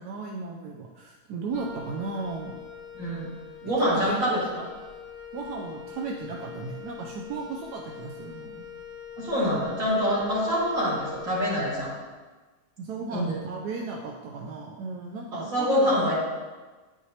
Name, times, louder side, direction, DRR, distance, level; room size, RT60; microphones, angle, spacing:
voice 1, 0.0-2.6 3.6-4.5 5.3-8.7 12.8-15.9, right 4 dB, 85° right, 0 dB, 1.2 m, -35 dB
Wind instrument woodwind instrument, 1.5-11.9, left 7 dB, 15° right, 0.9 m, -43 dB
voice 2, 2.9-3.3 3.6-4.6 9.2-11.9 13.1-13.4 15.3-16.1, equal, 55° right, -7 dB, 2.5 m, -25 dB
9.9 x 4.8 x 2.8 m, 1.3 s
omnidirectional pair, 1.7 m